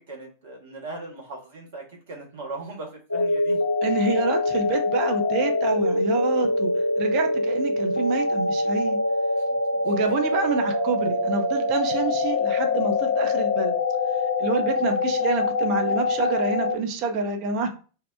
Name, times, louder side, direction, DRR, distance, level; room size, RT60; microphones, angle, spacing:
voice 1, 0.0-3.6 9.4-10.0 11.1-11.2, right 2 dB, 55° right, 0 dB, 0.9 m, -39 dB
sound 1, 3.1-16.8, left 2 dB, 80° left, 0.4 m, -24 dB
voice 2, 3.8-6.7 7.0-9.0 9.8-13.7 14.4-17.7, right 4 dB, 40° right, 4 dB, 0.5 m, -27 dB
2.7 x 2.0 x 2.3 m, 0.36 s
figure-of-eight pair, 90°, 0 cm